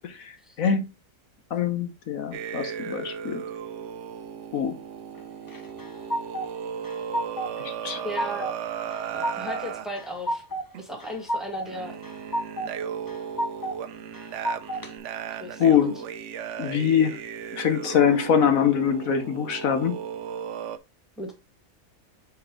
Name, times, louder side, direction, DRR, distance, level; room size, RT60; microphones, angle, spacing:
voice 1, 1.5-3.4 4.5-4.8 7.6-8.0 15.6-16.0 16.6-17.2 17.5-20.0, left 7 dB, 80° left, 1.4 m, -23 dB
sound 1, 2.3-9.9 10.7-11.0 11.6-20.8, right 8 dB, 65° right, 0.9 m, -36 dB
sound 2, 5.5-6.5 6.8-7.6 7.9-8.5 8.9-9.6 10.0-10.7 11.0-11.7 12.0-12.7 13.1-13.8 14.1-14.9, right 1 dB, 25° left, 0.4 m, -30 dB
voice 2, 8.0-8.5 9.1-10.4 10.8-12.0 15.4-15.9 21.2-21.3, equal, ahead, 1.7 m, -36 dB
7.2 x 4.1 x 3.8 m
omnidirectional pair, 1.4 m